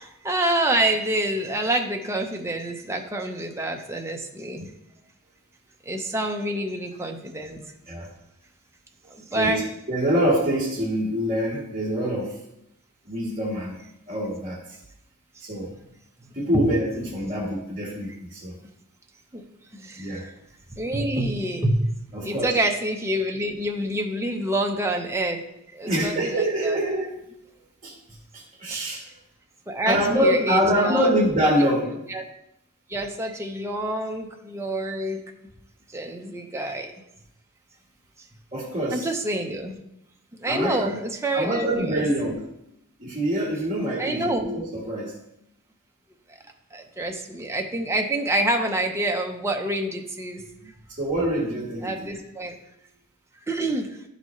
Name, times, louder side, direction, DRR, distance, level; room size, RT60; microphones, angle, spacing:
voice 1, 0.0-4.6 5.9-7.6 9.1-9.6 16.5-16.6 19.3-19.4 19.7-20.3 20.7-21.9 22.2-25.4 25.7-26.8 28.7-28.9 29.7-31.1 32.1-32.2 32.9-35.2 35.9-36.9 38.9-39.8 40.4-42.0 44.0-44.6 46.7-50.7 51.8-52.5 53.5-54.0, right 1 dB, 15° right, 2 dB, 0.7 m, -27 dB
voice 2, 9.3-12.3 13.0-13.8 14.1-14.8 15.4-15.8 16.3-18.5 20.0-20.2 22.1-22.6 25.9-27.1 27.8-27.9 28.3-29.0 29.8-32.0 38.5-39.1 40.4-41.0 41.3-42.4 43.0-45.1 51.0-52.2, equal, 35° right, -5 dB, 1.5 m, -25 dB
11.5 x 4.0 x 3.1 m, 0.81 s
head